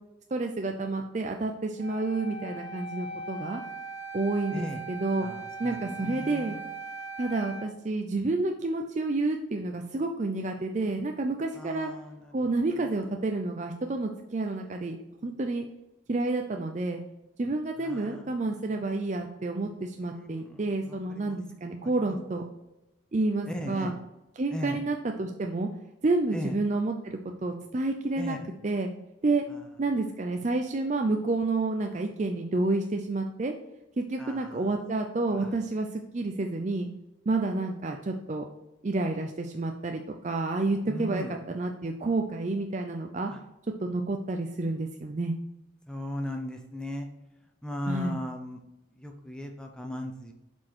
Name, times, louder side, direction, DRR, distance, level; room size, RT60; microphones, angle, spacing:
voice 1, 0.3-3.6 4.1-5.3 5.6-6.6 7.2-11.9 12.3-15.0 15.2-15.6 16.1-17.0 17.4-22.4 23.1-24.0 24.4-25.7 26.0-28.4 28.6-28.9 29.2-29.4 29.8-33.5 34.0-36.9 37.3-38.4 38.8-41.2 41.5-43.3 43.8-45.3 47.9-48.2, right 2 dB, 35° right, 3 dB, 0.5 m, -29 dB
Wind instrument woodwind instrument, 1.8-7.7, right 3 dB, 65° right, 0.8 m, -40 dB
voice 2, 4.5-4.8 5.2-6.6 11.5-12.5 17.8-18.5 20.1-21.4 22.0-22.2 23.5-23.9 24.5-24.8 26.3-26.6 28.2-28.5 29.5-29.6 34.2-34.7 35.3-35.5 40.9-41.4 43.3-43.4 45.9-47.1 47.6-48.6 49.0-50.3, left 1 dB, 5° left, 3 dB, 0.6 m, -38 dB
7.4 x 4.5 x 4.4 m, 0.96 s
head